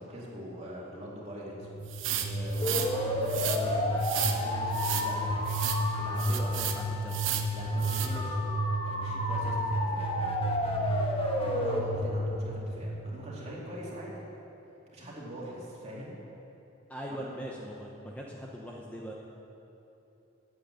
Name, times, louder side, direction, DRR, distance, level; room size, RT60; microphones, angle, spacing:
voice 1, 0.0-1.8 2.2-5.3 5.9-6.6 7.5-8.4 8.8-10.3 10.6-14.2 14.9-16.2 17.1-17.3, equal, 35° right, -6 dB, 2.7 m, -43 dB
sound 1, 1.6-13.4, equal, 30° left, 1.2 m, -30 dB
sound 2, 1.9-2.9 3.3-3.6 4.0-4.4 4.7-5.1 5.5-5.8 6.2-6.8 7.1-7.5 7.8-8.1, right 11 dB, 85° right, 0.8 m, -33 dB
Wind instrument woodwind instrument, 4.7-10.2, left 3 dB, 75° left, 1.2 m, -42 dB
voice 2, 6.1-7.2 8.0-8.2 16.9-19.1, equal, 5° left, -2 dB, 0.8 m, -41 dB
9.0 x 7.9 x 8.6 m, 3.0 s
head